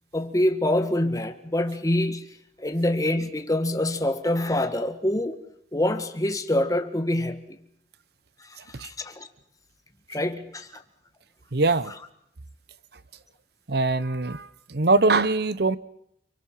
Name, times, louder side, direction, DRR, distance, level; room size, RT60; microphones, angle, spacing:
voice 1, 0.1-2.3 2.6-5.4 5.7-7.4 8.8-9.3 10.1-10.7, left 1 dB, 20° left, 1.5 m, -25 dB
voice 2, 8.6-8.9 11.5-11.9 13.7-15.8, right 3 dB, 60° right, 0.9 m, -23 dB
29.5 x 24.0 x 5.7 m
head